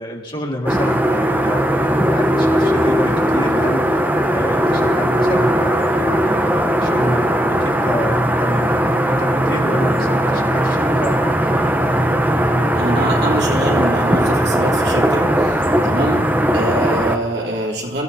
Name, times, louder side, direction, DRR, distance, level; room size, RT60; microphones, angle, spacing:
voice 1, 0.0-3.9 4.3-8.7 9.1-11.6, left 1 dB, 25° left, -1 dB, 1.9 m, -28 dB
sound 1, 0.7-17.2, right 1 dB, 10° right, 0.8 m, -18 dB
voice 2, 12.7-15.6 15.8-18.0, right 1 dB, 55° right, -3 dB, 3.3 m, -24 dB
27.0 x 15.5 x 2.8 m, 1.1 s
head